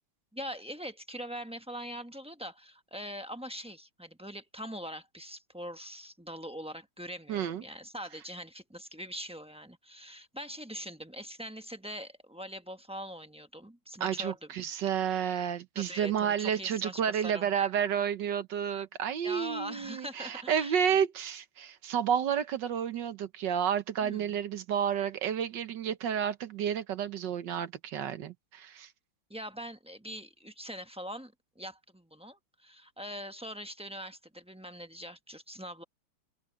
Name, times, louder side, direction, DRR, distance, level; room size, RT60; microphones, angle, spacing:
voice 1, 0.3-14.5 15.7-17.5 19.2-21.0 24.0-24.4 29.3-35.8, equal, 5° right, 0.6 m, -42 dB
voice 2, 7.3-7.6 14.0-28.9, right 8 dB, 65° right, 1.5 m, -31 dB
open air
omnidirectional pair, 2.2 m